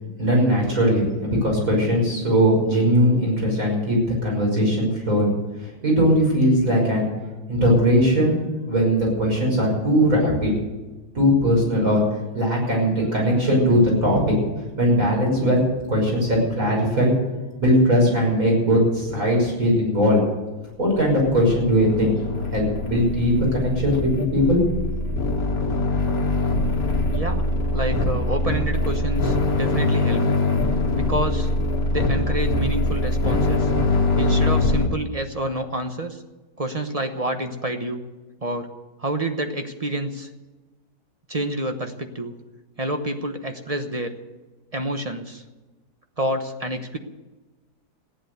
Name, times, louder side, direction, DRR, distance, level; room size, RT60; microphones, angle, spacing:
voice 1, 0.2-5.3 5.6-7.1 7.5-8.4 8.7-10.5 11.1-12.0 12.3-14.3 14.8-15.6 15.9-17.1 17.6-20.2 20.8-22.1 22.5-24.6, equal, 55° right, -2 dB, 6.4 m, -19 dB
sound 1, 21.0-34.9, left 2 dB, 65° left, 2.1 m, -23 dB
voice 2, 27.1-27.5 27.7-30.3 30.9-31.5 31.9-33.7 34.2-36.2 36.6-38.0 38.4-38.7 39.0-40.3 41.3-42.3 42.8-44.1 44.7-45.4 46.2-47.0, right 1 dB, 25° right, 6 dB, 0.9 m, -28 dB
15.0 x 10.5 x 8.0 m, 1.2 s
omnidirectional pair, 1.7 m